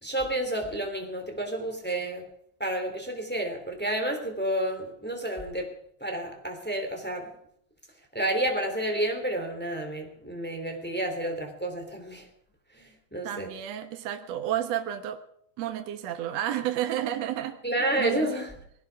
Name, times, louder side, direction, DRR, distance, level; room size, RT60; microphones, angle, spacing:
voice 1, 0.0-2.3 2.6-5.7 6.0-7.4 8.1-12.3 12.7-13.5 17.6-18.5, right 1 dB, 5° left, 2.9 m, -30 dB
voice 2, 13.2-15.2 15.6-17.6 18.0-18.3, right 11 dB, 65° right, 2.2 m, -31 dB
21.0 x 17.5 x 3.6 m
omnidirectional pair, 3.4 m